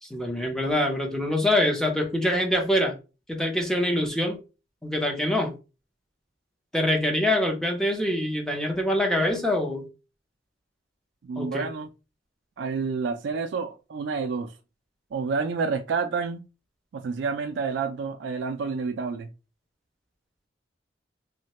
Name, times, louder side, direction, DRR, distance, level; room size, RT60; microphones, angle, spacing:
voice 1, 0.0-3.0 3.3-4.4 4.8-5.5 6.7-9.9 11.4-11.7, left 1 dB, 5° left, 0.6 m, -25 dB
voice 2, 11.2-11.9 12.6-14.5 15.1-16.4 16.9-19.3, right 5 dB, 65° right, 0.3 m, -29 dB
3.1 x 2.1 x 2.8 m
head